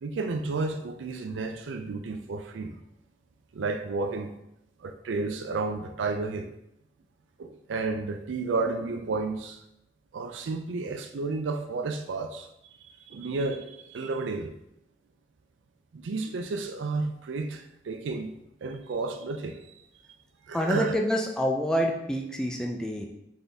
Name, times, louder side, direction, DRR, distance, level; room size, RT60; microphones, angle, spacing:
voice 1, 0.0-2.8 3.5-4.3 4.8-6.5 7.4-9.6 10.1-14.5 15.9-18.3 18.6-19.6 20.5-21.0, right 3 dB, 80° right, 0.4 m, -32 dB
voice 2, 20.5-23.1, equal, 5° left, 0.3 m, -27 dB
4.0 x 3.7 x 3.4 m
head